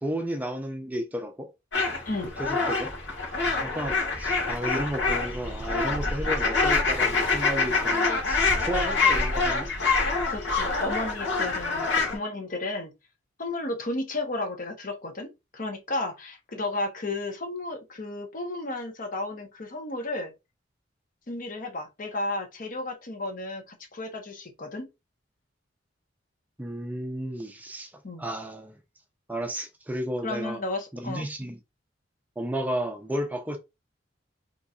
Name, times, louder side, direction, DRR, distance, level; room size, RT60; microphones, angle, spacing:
voice 1, 0.0-1.5 2.4-2.9 3.6-9.7 26.6-27.9 28.2-28.8 29.3-30.6 30.9-31.6 32.4-33.6, equal, 10° right, 0.4 m, -33 dB
sound 1, 1.7-12.2, left 3 dB, 75° left, 1.4 m, -26 dB
voice 2, 10.3-12.9 13.4-20.3 21.3-24.9 28.0-28.2 30.2-31.3, left 2 dB, 50° left, 0.8 m, -33 dB
4.0 x 3.0 x 2.4 m
head